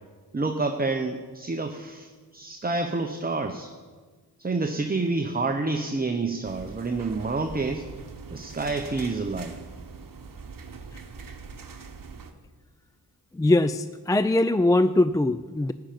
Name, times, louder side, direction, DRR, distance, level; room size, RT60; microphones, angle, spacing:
voice 1, 0.3-3.7 4.4-7.9 8.3-9.6, right 3 dB, 20° right, 5 dB, 0.9 m, -28 dB
sound 1, 6.4-12.3, right 4 dB, 55° right, 1.2 m, -42 dB
voice 2, 13.3-15.7, left 2 dB, 10° left, 12 dB, 0.3 m, -21 dB
13.0 x 5.8 x 9.1 m, 1.4 s
cardioid pair, 55°, 40 cm